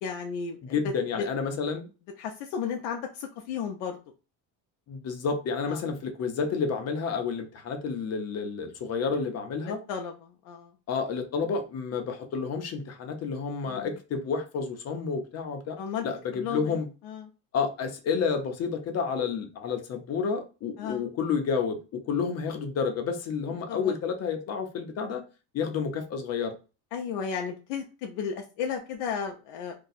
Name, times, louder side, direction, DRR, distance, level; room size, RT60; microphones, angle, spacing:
voice 1, 0.0-0.6 2.2-4.0 5.7-5.8 9.6-10.7 13.7-13.9 15.8-16.7 17.0-17.3 20.8-21.1 23.7-23.9 26.9-29.7, left 7 dB, 85° left, 0.6 m, -34 dB
voice 2, 0.7-1.9 4.9-9.8 10.9-15.8 16.0-16.9 17.5-25.2 25.5-26.5, left 5 dB, 40° left, 0.7 m, -30 dB
2.7 x 2.2 x 3.9 m
cardioid pair, 155°, 39 cm